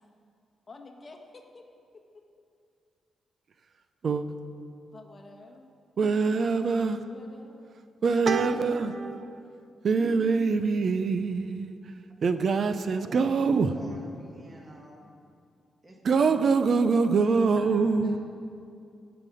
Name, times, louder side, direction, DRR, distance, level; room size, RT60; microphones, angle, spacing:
voice 1, 0.7-1.6 4.9-5.7 7.1-7.8 8.4-9.1, left 3 dB, 35° left, 2 dB, 1.5 m, -49 dB
voice 2, 6.0-7.0 8.0-9.4 9.8-11.8 12.2-13.7 16.0-18.2, right 4 dB, 55° right, 10 dB, 0.6 m, -24 dB
voice 3, 13.6-15.2 15.8-16.5 17.5-18.2, right 1 dB, 25° right, 0 dB, 1.7 m, -48 dB
17.5 x 6.0 x 5.0 m, 2.4 s
cardioid pair, 85°, 0 cm